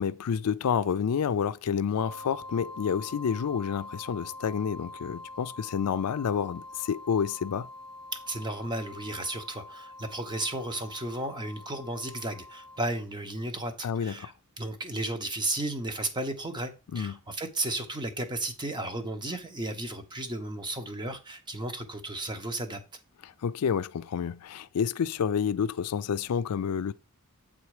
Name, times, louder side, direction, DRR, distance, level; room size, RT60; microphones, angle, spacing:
voice 1, 0.0-7.7 13.8-14.3 16.9-17.2 23.2-26.9, left 7 dB, 85° left, 0.4 m, -29 dB
sound 1, 2.0-12.8, left 2 dB, 85° right, 1.2 m, -45 dB
voice 2, 8.1-22.8, right 1 dB, 20° right, 0.9 m, -34 dB
8.2 x 3.6 x 4.8 m
head